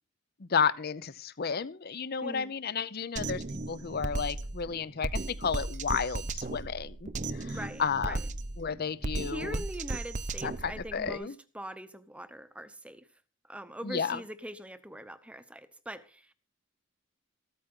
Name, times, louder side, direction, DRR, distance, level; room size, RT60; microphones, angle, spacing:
voice 1, 0.4-7.1 7.4-8.2 8.6-9.6 10.4-11.3 13.8-14.2, left 6 dB, 45° left, 0.6 m, -32 dB
voice 2, 2.2-2.5 7.5-8.2 9.3-13.1 13.5-16.3, right 1 dB, 5° right, 0.8 m, -42 dB
Drum kit, 3.2-11.1, right 2 dB, 35° right, 0.6 m, -36 dB
14.5 x 13.5 x 3.7 m
head